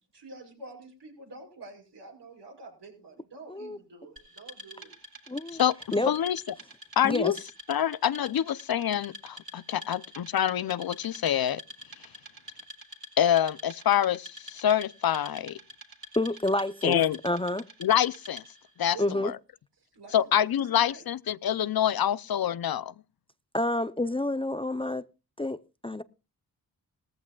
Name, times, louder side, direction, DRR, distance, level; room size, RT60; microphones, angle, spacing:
voice 1, 0.1-4.9 18.9-19.1 19.9-21.0, right 3 dB, 75° right, 6.4 m, -47 dB
voice 2, 3.5-3.8 5.3-5.6 5.9-6.1 7.0-7.3 16.2-17.6 19.0-19.3 23.5-25.0 25.4-26.0, left 1 dB, 15° left, 0.6 m, -29 dB
Wood, 4.2-18.7, equal, 55° right, 7.7 m, -47 dB
voice 3, 6.1-6.4 7.0-7.4 7.7-11.6 13.2-15.6 16.8-17.2 17.8-18.4 18.8-19.0 19.2-19.3 20.1-22.9, left 10 dB, 60° left, 0.6 m, -26 dB
18.5 x 14.5 x 2.3 m
supercardioid pair, 40°, 42 cm